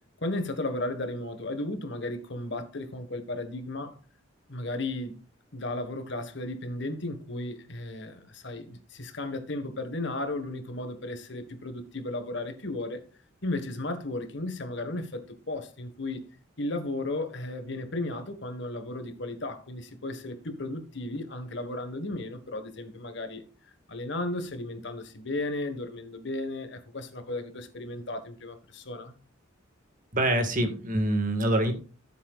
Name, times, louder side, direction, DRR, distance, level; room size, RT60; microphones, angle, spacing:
voice 1, 0.2-4.0 4.5-5.2 5.5-13.0 13.4-16.2 16.6-23.4 23.9-29.2, left 2 dB, 60° left, 1.6 m, -34 dB
voice 2, 30.1-31.7, right 1 dB, 40° right, 1.8 m, -25 dB
14.5 x 7.6 x 2.5 m
head